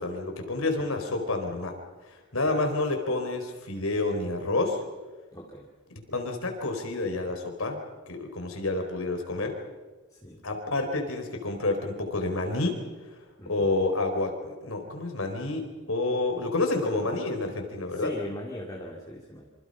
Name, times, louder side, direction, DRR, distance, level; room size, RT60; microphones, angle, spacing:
voice 1, 0.0-1.8 2.3-4.8 5.9-7.8 8.1-9.6 10.4-12.8 13.4-18.1, left 2 dB, 75° left, 4 dB, 4.4 m, -29 dB
voice 2, 5.3-5.7 10.1-10.4 13.4-13.7 17.9-19.5, equal, 15° left, -2 dB, 2.3 m, -40 dB
27.0 x 26.5 x 5.6 m, 1.2 s
head